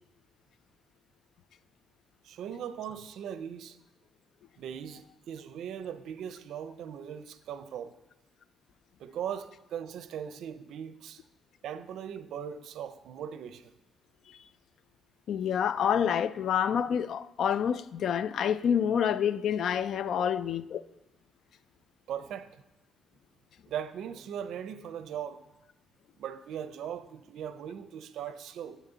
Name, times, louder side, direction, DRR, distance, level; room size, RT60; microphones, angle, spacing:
voice 1, 2.2-3.8 4.6-8.0 9.0-11.2 11.6-13.7 20.2-20.3 22.1-22.6 23.7-25.4 26.2-28.8, right 8 dB, 75° right, 0.6 m, -39 dB
voice 2, 15.3-20.8, left 8 dB, 65° left, 0.4 m, -28 dB
9.2 x 8.4 x 4.0 m
cardioid pair, 135°, 0 cm